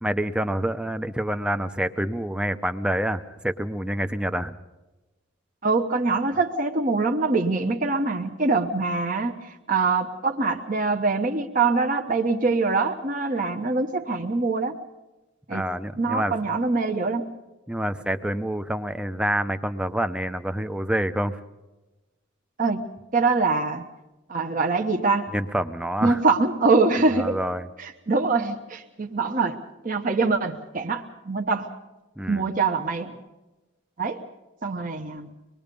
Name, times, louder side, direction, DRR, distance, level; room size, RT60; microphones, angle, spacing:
voice 1, 0.0-4.5 15.5-16.6 17.7-21.4 25.3-26.2 27.1-27.7 32.2-32.5, right 1 dB, 5° right, 10 dB, 0.7 m, -27 dB
voice 2, 5.6-14.8 15.5-15.7 16.0-17.3 22.6-22.8 23.1-23.9 24.3-25.3 26.0-27.4 27.8-29.6 29.8-31.7 32.3-33.1 34.0-34.2 34.6-35.3, right 3 dB, 40° right, 3 dB, 1.0 m, -24 dB
24.5 x 20.5 x 5.3 m, 1.1 s
head